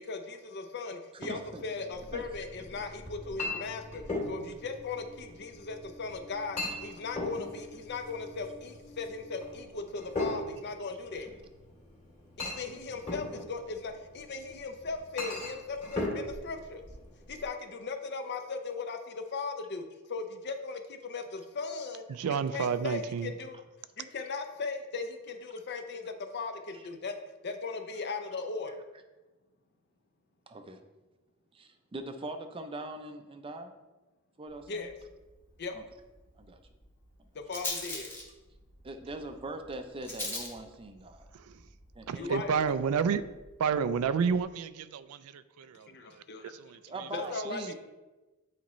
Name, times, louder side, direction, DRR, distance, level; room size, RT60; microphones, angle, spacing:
voice 1, 0.0-11.3 12.4-16.8 17.3-22.0 22.3-23.6 24.0-27.1 27.4-28.8 34.7-34.9 35.6-35.8 37.3-38.1 42.1-42.8 45.9-46.5 47.1-47.7, left 4 dB, 50° left, 6 dB, 0.6 m, -38 dB
sound 1, 1.2-9.6, left 1 dB, 90° left, 1.8 m, -53 dB
voice 2, 1.2-1.6 2.1-2.2 12.7-12.8 26.7-26.8 30.5-30.8 31.5-33.7 34.4-34.9 35.7-35.8 36.4-36.6 38.8-41.3 42.0-42.4 46.9-47.7, right 2 dB, 25° right, 7 dB, 0.5 m, -41 dB
Chink clink, 1.9-17.5, left 2 dB, 35° left, 2.0 m, -39 dB
voice 3, 22.2-23.3 42.1-43.2 43.6-45.9 46.6-46.8, right 6 dB, 85° right, 13 dB, 0.3 m, -30 dB
Rattle, 34.5-44.4, left 1 dB, 10° left, 1.0 m, -44 dB
8.4 x 4.1 x 3.1 m, 1.1 s
head